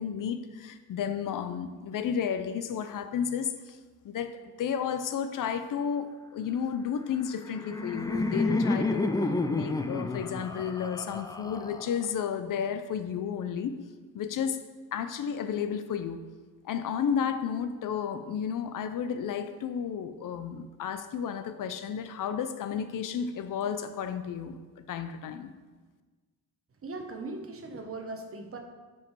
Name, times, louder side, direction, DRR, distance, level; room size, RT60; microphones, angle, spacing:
voice 1, 0.0-3.8 4.0-13.8 14.1-14.6 14.9-16.2 16.6-25.5, left 7 dB, 65° left, 10 dB, 0.7 m, -32 dB
Laughter, 7.2-12.2, left 2 dB, 10° left, 0.4 m, -30 dB
voice 2, 26.8-28.6, right 3 dB, 40° right, 5 dB, 1.0 m, -39 dB
8.1 x 5.2 x 4.6 m, 1.4 s
cardioid pair, 100°, 34 cm